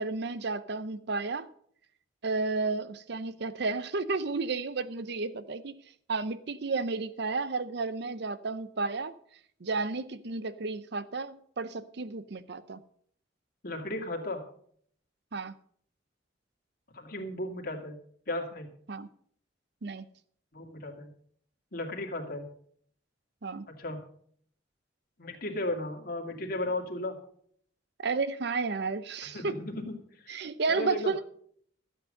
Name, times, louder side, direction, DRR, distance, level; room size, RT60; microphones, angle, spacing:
voice 1, 0.0-1.5 2.2-5.8 6.1-9.1 9.6-12.8 15.3-15.5 18.9-19.1 19.8-20.0 23.4-23.7 28.0-29.6 30.3-31.2, right 3 dB, 60° right, 0.7 m, -32 dB
voice 2, 13.6-14.4 16.9-18.0 18.3-18.7 20.5-21.1 21.7-22.5 23.7-24.0 25.2-27.2 29.3-30.4 30.7-31.1, left 1 dB, 55° left, 2.2 m, -35 dB
12.5 x 8.3 x 6.5 m
head